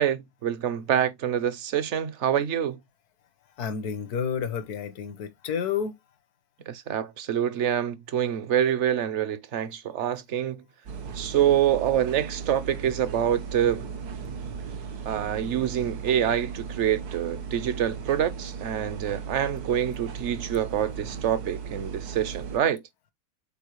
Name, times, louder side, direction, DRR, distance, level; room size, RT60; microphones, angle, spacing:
voice 1, 0.0-2.8 6.7-10.6 11.1-13.9 15.1-22.8, right 10 dB, 60° right, 0.9 m, -26 dB
voice 2, 3.6-6.0, left 7 dB, 85° left, 1.6 m, -30 dB
sound 1, 10.9-22.6, right 6 dB, 85° right, 1.6 m, -37 dB
7.1 x 4.5 x 3.0 m
omnidirectional pair, 1.6 m